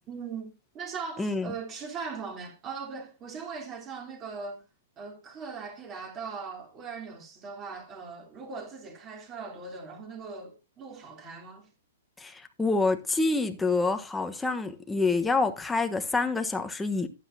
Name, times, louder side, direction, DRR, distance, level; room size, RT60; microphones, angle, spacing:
voice 1, 0.1-4.6 5.0-11.7, right 5 dB, 20° right, 3.5 m, -40 dB
voice 2, 1.2-1.5 12.2-17.1, left 3 dB, 5° left, 1.2 m, -27 dB
12.0 x 10.5 x 2.8 m
hypercardioid pair, 145°, 0 cm